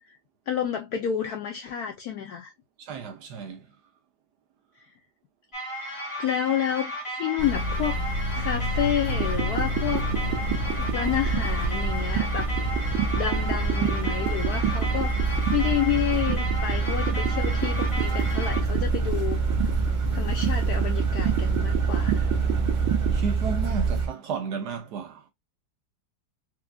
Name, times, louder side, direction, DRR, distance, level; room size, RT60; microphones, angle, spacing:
voice 1, 0.5-2.5 6.2-10.1 10.8-12.5 13.2-19.4 20.1-22.3, left 10 dB, 75° left, 0.9 m, -30 dB
voice 2, 2.8-3.7 23.1-25.3, right 6 dB, 70° right, 1.0 m, -33 dB
sound 1, 5.5-18.6, equal, 20° left, 0.9 m, -35 dB
sound 2, 7.4-24.1, right 3 dB, 35° right, 0.8 m, -26 dB
sound 3, 9.1-23.2, right 11 dB, 85° right, 1.4 m, -32 dB
4.4 x 2.4 x 2.2 m
omnidirectional pair, 2.1 m